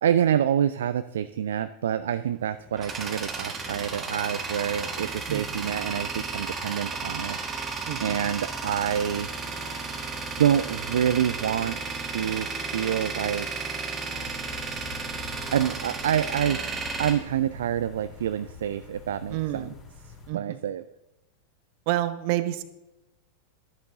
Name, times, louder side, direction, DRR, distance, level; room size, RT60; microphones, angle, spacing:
voice 1, 0.0-7.4 8.0-9.3 10.4-13.8 15.5-19.7 20.3-20.8, right 9 dB, 60° right, 12 dB, 0.3 m, -27 dB
Tools, 2.3-18.1, right 4 dB, 20° right, 1.9 m, -33 dB
voice 2, 7.9-8.2 19.3-19.7 20.3-20.6 21.9-22.6, right 15 dB, 45° right, 12 dB, 0.8 m, -29 dB
sound 1, 14.1-20.3, left 4 dB, 30° left, 3.6 m, -46 dB
12.0 x 10.5 x 3.8 m, 0.96 s
figure-of-eight pair, 90°, 0 cm